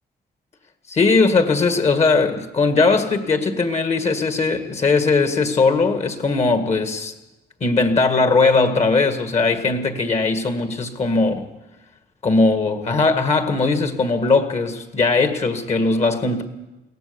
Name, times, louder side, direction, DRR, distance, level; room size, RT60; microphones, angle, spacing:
voice 1, 0.9-7.1 7.6-11.5 12.2-16.4, left 3 dB, 40° left, 2.0 m, -19 dB
22.5 x 17.5 x 7.0 m
cardioid pair, 135°, 17 cm